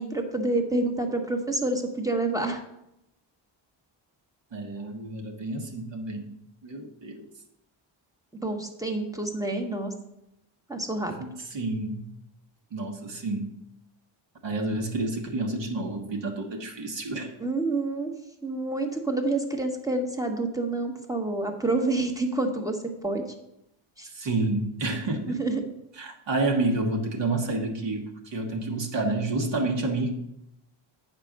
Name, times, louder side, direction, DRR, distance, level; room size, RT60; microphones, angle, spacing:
voice 1, 0.0-2.6 8.4-9.9 10.7-11.1 17.4-18.1 18.4-23.2 24.0-24.1 25.3-25.6, right 2 dB, 5° right, 3 dB, 1.1 m, -28 dB
voice 2, 4.5-6.3 6.6-7.2 11.2-12.0 12.7-13.5 14.4-17.3 24.1-25.4 26.0-30.1, right 2 dB, 60° right, 1 dB, 1.4 m, -29 dB
8.8 x 4.4 x 6.5 m, 0.85 s
cardioid pair, 115°, 49 cm